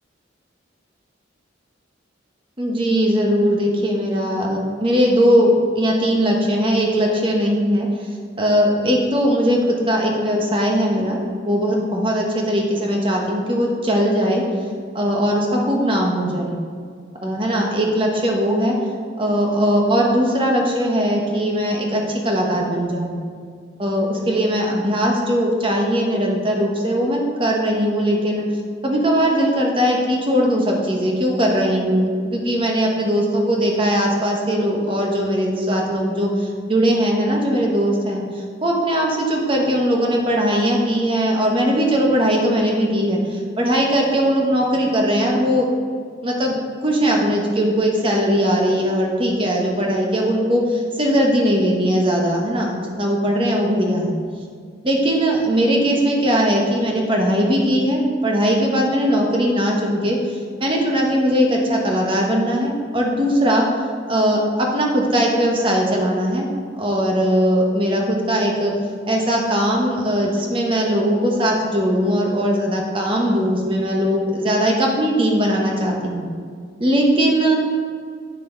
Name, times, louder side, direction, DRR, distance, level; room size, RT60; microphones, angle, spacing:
voice 1, 2.6-7.9 8.4-11.2 11.5-14.4 14.9-16.6 17.2-18.7 19.2-23.2 23.8-28.5 28.8-38.2 38.6-45.7 46.2-54.1 54.8-63.7 64.1-66.5 66.7-68.7 69.1-76.3 76.8-77.5, equal, 25° right, -1 dB, 1.2 m, -19 dB
9.0 x 6.6 x 3.9 m, 2.1 s
head